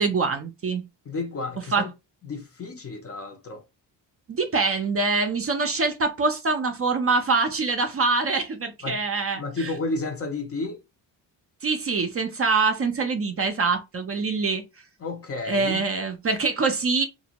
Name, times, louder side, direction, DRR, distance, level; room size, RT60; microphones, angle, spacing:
voice 1, 0.0-0.9 1.7-1.8 4.3-9.7 11.6-14.6 15.5-17.0, right 4 dB, 30° right, 0.5 m, -24 dB
voice 2, 1.1-1.9 2.3-3.6 8.8-9.0 9.3-10.8 15.0-15.8, left 3 dB, 30° left, 0.5 m, -31 dB
2.6 x 2.1 x 2.8 m
cardioid pair, 90°, 46 cm